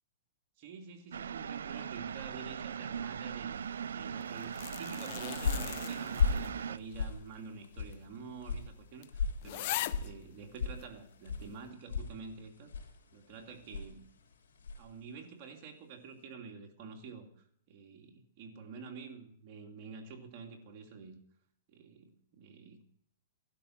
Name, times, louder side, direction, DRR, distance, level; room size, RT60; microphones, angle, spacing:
voice 1, 0.6-3.6 3.9-12.7 13.1-14.0 14.8-21.2 21.7-22.9, right 5 dB, 40° right, 2 dB, 2.8 m, -48 dB
sound 1, 1.1-6.8, right 7 dB, 90° right, 0.5 m, -39 dB
sound 2, 4.2-6.7 7.0-7.1 7.9-8.0 8.4-8.5 9.0-9.1 9.4-10.1 10.8-10.9, left 15 dB, 50° left, 0.7 m, -40 dB
sound 3, 5.0-15.0, left 5 dB, 85° left, 3.8 m, -38 dB
16.5 x 12.0 x 5.9 m, 0.68 s
hypercardioid pair, 145°, 0 cm